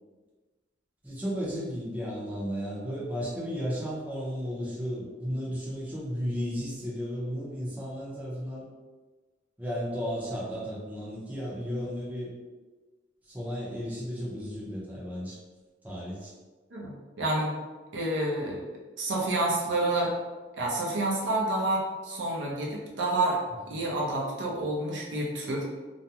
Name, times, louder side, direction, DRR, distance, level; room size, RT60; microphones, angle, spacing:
voice 1, 1.0-8.7 9.6-12.3 13.2-15.4 15.8-16.3 23.7-23.8, equal, 10° right, -7 dB, 0.6 m, -34 dB
voice 2, 16.7-17.6 17.9-18.6 19.0-20.1 20.6-23.4 23.7-25.6, right 2 dB, 70° right, -3 dB, 0.6 m, -29 dB
2.5 x 2.1 x 2.8 m, 1.3 s
head